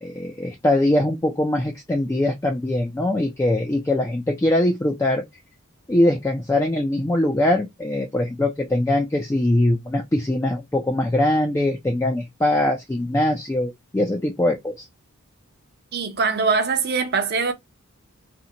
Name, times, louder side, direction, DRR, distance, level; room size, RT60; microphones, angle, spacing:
voice 1, 0.0-5.3 5.9-14.9, left 1 dB, 15° left, 0.3 m, -22 dB
voice 2, 15.9-17.5, right 5 dB, 45° right, 0.6 m, -22 dB
2.6 x 2.1 x 2.7 m
head